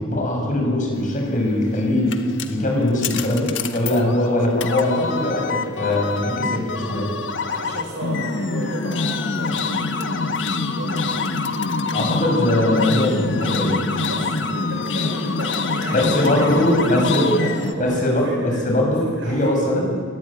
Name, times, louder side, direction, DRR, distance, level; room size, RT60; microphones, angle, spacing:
voice 1, 0.0-2.1 2.5-7.1 11.9-13.8 15.9-17.3 17.8-20.0, left 1 dB, 45° left, 0 dB, 7.4 m, -21 dB
sound 1, 1.5-17.7, left 4 dB, 75° left, 1.5 m, -25 dB
voice 2, 7.4-11.2 14.0-19.5, right 1 dB, 85° right, -2 dB, 6.0 m, -33 dB
23.0 x 19.5 x 9.0 m, 2.2 s
head